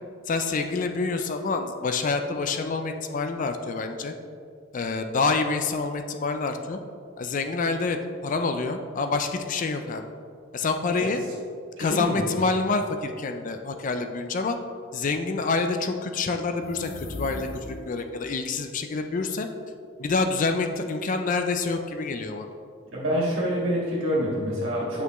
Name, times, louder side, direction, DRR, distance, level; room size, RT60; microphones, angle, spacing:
voice 1, 0.3-4.1 4.7-6.8 7.2-10.1 10.5-11.2 11.8-14.6 14.9-19.5 20.0-22.5, left 3 dB, 40° left, 6 dB, 0.4 m, -27 dB
voice 2, 11.8-12.2 22.9-25.0, equal, 75° right, -6 dB, 1.8 m, -26 dB
sound 1, 16.5-18.1, left 2 dB, 70° left, 0.7 m, -38 dB
8.2 x 5.6 x 3.0 m, 2.2 s
head